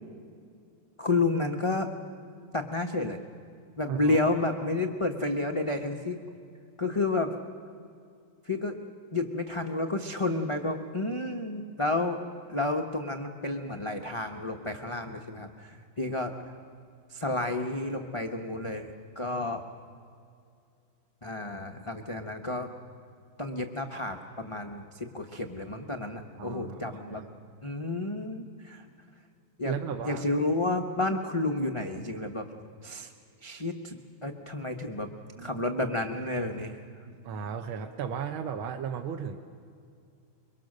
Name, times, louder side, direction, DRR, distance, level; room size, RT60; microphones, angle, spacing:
voice 1, 1.0-1.9 2.5-3.2 3.8-6.2 6.8-7.3 8.4-8.8 9.1-12.2 12.5-16.3 17.1-19.6 21.2-22.7 23.4-27.2 27.6-28.9 29.6-29.7 30.0-32.5 32.8-33.1 33.4-35.1 35.4-36.8, left 2 dB, 30° left, 4 dB, 0.5 m, -31 dB
voice 2, 3.9-4.3 26.4-27.3 29.6-30.3 35.4-35.5 37.1-39.4, right 7 dB, 80° right, 4 dB, 1.8 m, -35 dB
24.5 x 23.0 x 6.5 m, 2.3 s
omnidirectional pair, 2.3 m